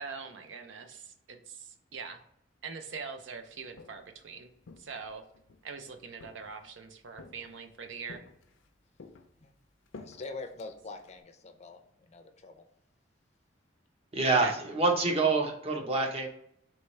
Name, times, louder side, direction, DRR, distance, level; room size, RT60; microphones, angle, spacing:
voice 1, 0.0-2.2 2.6-5.2 5.6-8.2 14.4-14.5, right 5 dB, 75° right, 7 dB, 0.5 m, -43 dB
Walk footsteps, 3.5-4.2 4.6-5.7 6.2-6.8 7.2-7.7 8.1-8.7 9.0-11.2, left 3 dB, 80° left, 0.5 m, -52 dB
voice 2, 9.9-12.6, left 3 dB, 35° left, 6 dB, 0.5 m, -44 dB
voice 3, 14.1-16.3, right 3 dB, 35° right, 2 dB, 0.8 m, -26 dB
4.6 x 3.1 x 3.2 m, 0.72 s
head